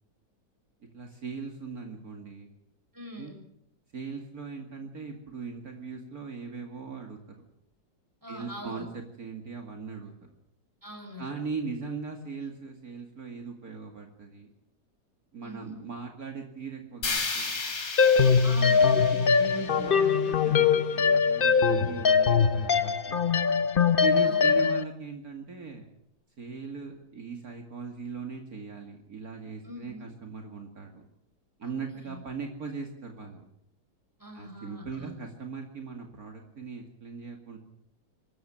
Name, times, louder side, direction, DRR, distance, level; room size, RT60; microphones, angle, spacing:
voice 1, 0.9-2.5 3.2-3.3 3.9-7.4 8.3-10.1 11.2-14.5 15.3-17.7 18.8-19.0 19.4-23.3 24.0-25.9 26.4-31.0 31.6-33.4 34.3-37.6, right 4 dB, 55° right, 3 dB, 2.7 m, -39 dB
voice 2, 2.9-3.4 8.2-8.9 10.8-11.3 15.4-15.9 18.4-19.5 21.5-21.9 24.2-24.6 29.6-30.1 31.6-31.7 32.0-32.2 34.2-35.1, equal, 10° right, 3 dB, 6.0 m, -43 dB
sound 1, 17.0-21.1, left 4 dB, 60° left, 3.3 m, -35 dB
sound 2, 18.0-24.8, left 6 dB, 40° left, 0.9 m, -22 dB
25.0 x 13.5 x 8.9 m, 0.78 s
omnidirectional pair, 1.9 m